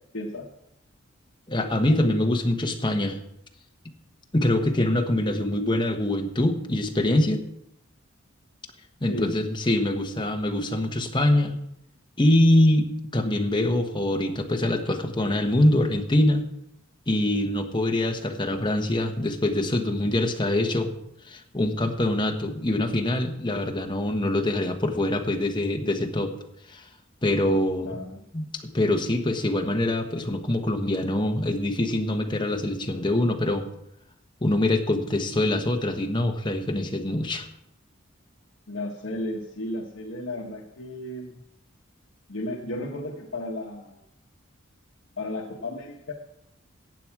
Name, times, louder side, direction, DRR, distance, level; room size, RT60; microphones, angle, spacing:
voice 1, 0.1-0.5 9.1-9.5 27.8-28.2 38.7-41.4 42.3-44.0 45.2-46.1, left 1 dB, 65° left, 0 dB, 1.2 m, -34 dB
voice 2, 1.5-3.2 4.3-7.4 9.0-11.6 12.2-12.9 13.1-16.4 17.1-20.9 21.3-26.3 26.7-26.8 27.2-28.0 28.3-28.5 28.7-33.6 34.4-37.5, left 1 dB, 25° left, 3 dB, 1.2 m, -24 dB
15.0 x 8.6 x 4.8 m, 0.79 s
head